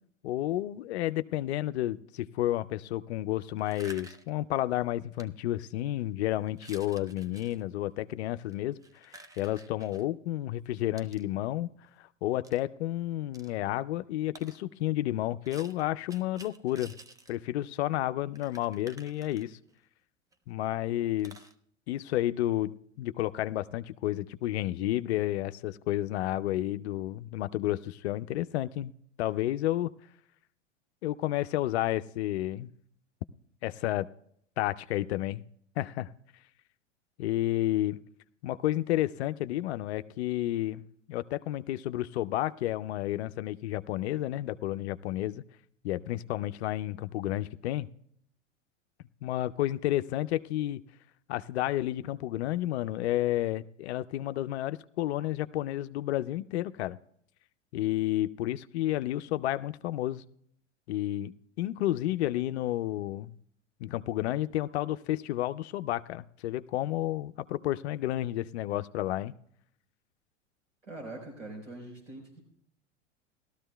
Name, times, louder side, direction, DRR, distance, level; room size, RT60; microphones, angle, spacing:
voice 1, 0.2-8.8 9.0-11.7 12.2-16.9 17.3-19.6 20.5-21.3 21.9-28.9 29.2-29.9 31.0-32.7 33.6-34.1 34.6-35.4 35.8-36.1 37.2-38.0 38.4-40.8 41.1-45.4 45.8-47.9 49.2-50.8 51.3-57.0 57.7-60.2 60.9-61.3 61.6-63.3 63.8-69.3, left 14 dB, 60° left, 13 dB, 0.5 m, -31 dB
sound 1, 3.6-4.4 5.1-5.3 5.8-6.0 6.5-7.6 8.4-10.1 11.0-11.2 12.4-12.6 13.3-13.5 14.4-14.6 15.4-17.4 17.7-17.8 18.0-18.1 18.4-19.8 20.3-20.4 20.6-20.7 21.2-21.5, right 2 dB, 10° right, 0.5 m, -51 dB
voice 2, 70.8-72.4, right 2 dB, 90° right, 0 dB, 4.3 m, -43 dB
18.0 x 13.0 x 2.2 m, 0.68 s
hypercardioid pair, 95°, 37 cm